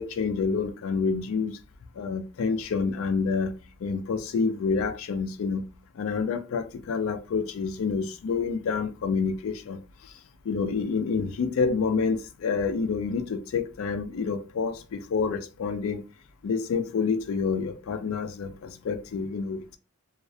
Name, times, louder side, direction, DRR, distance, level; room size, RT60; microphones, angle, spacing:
voice 1, 0.0-1.6 2.0-3.5 3.8-5.6 6.0-10.1 10.5-16.0 16.4-19.8, left 5 dB, 70° left, 0.3 m, -28 dB
2.4 x 2.0 x 2.6 m
head